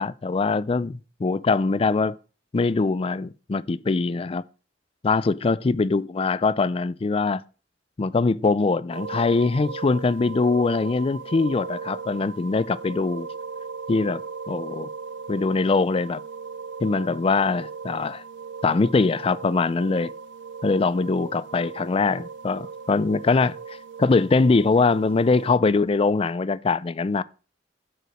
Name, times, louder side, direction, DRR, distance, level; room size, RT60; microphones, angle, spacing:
voice 1, 0.0-2.1 2.5-4.4 5.0-7.4 8.0-13.3 13.9-14.2 14.5-14.9 15.3-16.2 16.8-18.2 18.6-20.1 20.6-23.6 24.0-27.2, left 4 dB, 30° left, 0.4 m, -22 dB
sound 1, 8.9-25.5, right 5 dB, 75° right, 0.5 m, -38 dB
7.8 x 4.8 x 6.3 m
head